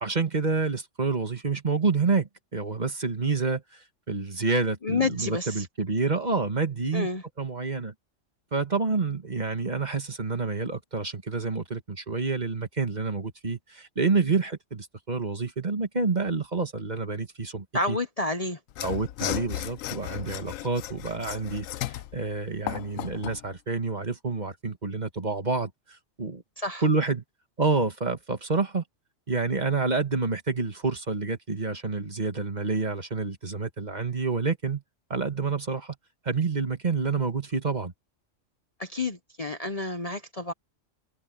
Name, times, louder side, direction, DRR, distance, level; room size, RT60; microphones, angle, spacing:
voice 1, 0.0-7.1 7.4-7.9 8.5-18.0 18.8-26.4 26.8-27.2 27.6-28.8 29.3-34.8 35.1-35.9 36.2-37.9, right 4 dB, 35° right, 1.7 m, -28 dB
voice 2, 4.8-5.7 6.9-7.2 17.7-18.6 26.6-26.8 38.8-40.5, left 3 dB, 35° left, 0.9 m, -29 dB
Mechanisms / Sawing, 18.7-23.4, left 13 dB, 90° left, 1.0 m, -35 dB
omnidirectional pair, 1.3 m